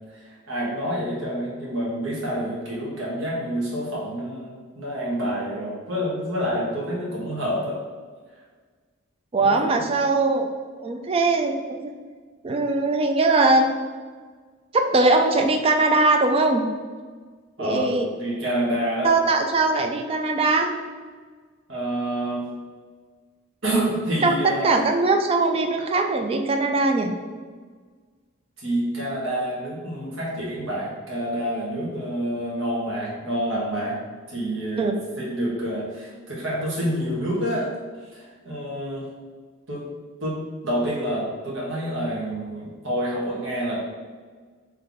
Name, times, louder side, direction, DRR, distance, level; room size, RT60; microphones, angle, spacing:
voice 1, 0.1-7.8 9.4-9.8 17.6-19.1 21.7-22.5 23.6-24.7 28.6-34.0 34.3-37.7 38.1-39.1 39.7-39.8 40.2-40.4 40.6-43.8, equal, 70° right, -6 dB, 1.4 m, -28 dB
voice 2, 9.3-10.5 10.8-11.9 12.4-13.7 14.7-16.7 17.6-18.1 19.0-20.7 24.2-27.1 34.8-34.9, right 3 dB, 30° right, 4 dB, 0.3 m, -21 dB
3.9 x 3.3 x 3.5 m, 1.5 s
head